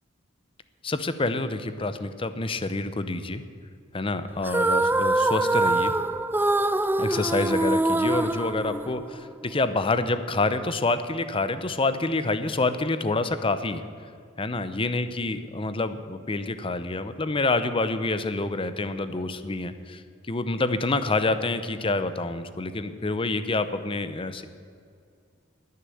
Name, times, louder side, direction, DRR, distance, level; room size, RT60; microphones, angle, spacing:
voice 1, 0.8-3.4 3.9-5.9 7.0-13.8 14.4-20.0 20.3-24.4, left 2 dB, 30° left, 11 dB, 0.7 m, -27 dB
sound 1, 4.4-9.3, right 2 dB, 10° right, 0.4 m, -24 dB
20.0 x 6.7 x 7.8 m, 2.2 s
head